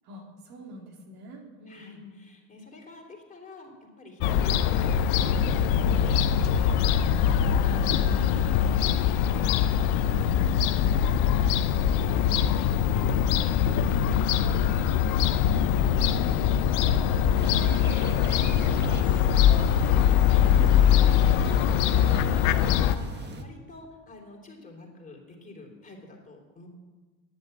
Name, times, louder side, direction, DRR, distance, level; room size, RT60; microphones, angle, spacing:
voice 1, 0.0-2.2 7.6-8.7 14.3-14.7 21.9-22.3, left 1 dB, 65° right, 0 dB, 3.0 m, -44 dB
voice 2, 1.7-7.7 8.1-8.5 8.8-10.5 10.8-16.9 17.5-17.6 18.0-19.5 19.8-26.7, left 1 dB, 20° left, -1 dB, 3.5 m, -47 dB
Fowl / Gull seagull, 4.2-23.0, left 9 dB, 70° left, 0.8 m, -22 dB
sound 1, 17.4-23.4, right 2 dB, 25° right, 1.5 m, -40 dB
11.0 x 8.4 x 7.9 m, 1.3 s
supercardioid pair, 100°, 40 cm